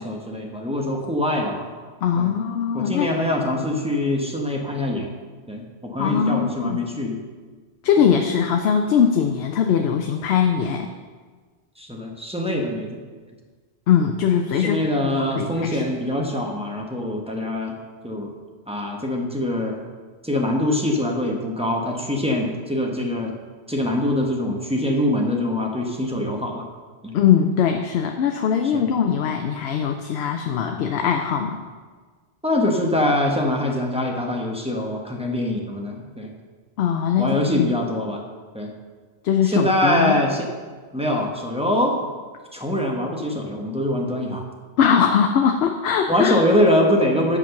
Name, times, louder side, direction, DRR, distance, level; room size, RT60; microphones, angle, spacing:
voice 1, 0.0-1.7 2.2-2.3 2.7-5.1 5.5-7.2 8.0-8.1 11.8-13.0 14.5-17.8 18.0-18.3 18.7-19.8 20.2-23.3 23.7-26.7 27.0-27.2 28.6-28.8 32.4-36.3 37.2-38.2 38.5-38.7 39.4-40.5 40.9-41.9 42.5-44.4 46.1-47.4, left 1 dB, 5° right, 0 dB, 1.0 m, -23 dB
voice 2, 2.0-3.1 6.0-6.8 7.8-10.9 13.9-15.8 27.1-31.6 36.8-37.7 39.2-40.2 44.8-46.4, left 7 dB, 80° left, 5 dB, 0.8 m, -21 dB
7.9 x 6.0 x 5.8 m, 1.5 s
omnidirectional pair, 1.1 m